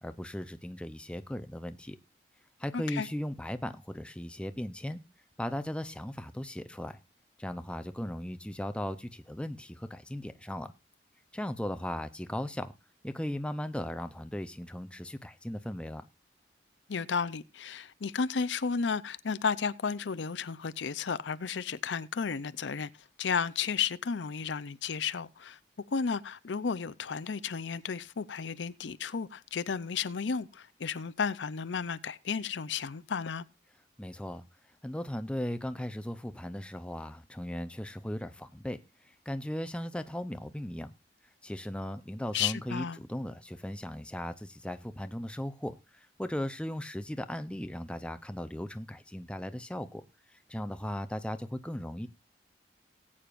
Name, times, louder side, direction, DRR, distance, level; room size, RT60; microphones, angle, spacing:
voice 1, 0.0-2.0 2.6-5.0 5.4-7.0 7.4-10.7 11.3-12.7 13.0-16.0 34.0-34.4 34.8-38.8 39.0-40.9 41.4-50.0 50.3-52.1, left 1 dB, 5° left, 0.6 m, -37 dB
voice 2, 2.7-3.1 16.9-22.9 23.2-25.6 25.9-33.4 42.3-43.0, left 6 dB, 80° left, 0.6 m, -33 dB
19.0 x 8.6 x 2.5 m
head